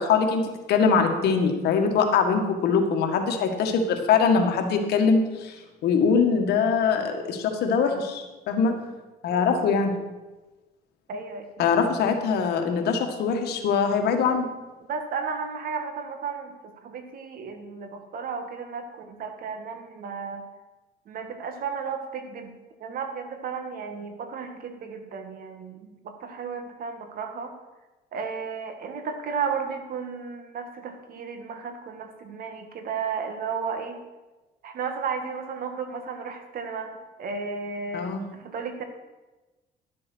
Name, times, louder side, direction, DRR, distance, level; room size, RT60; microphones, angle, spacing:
voice 1, 0.0-5.6 5.8-8.8 9.2-9.9 11.6-14.5 37.9-38.2, left 5 dB, 75° left, 5 dB, 1.7 m, -22 dB
voice 2, 11.1-11.8 14.8-16.5 16.8-20.4 21.1-22.5 22.8-27.5 28.1-34.0 34.6-38.8, right 5 dB, 60° right, 6 dB, 1.8 m, -34 dB
11.5 x 7.6 x 6.2 m, 1.2 s
cardioid pair, 110°, 17 cm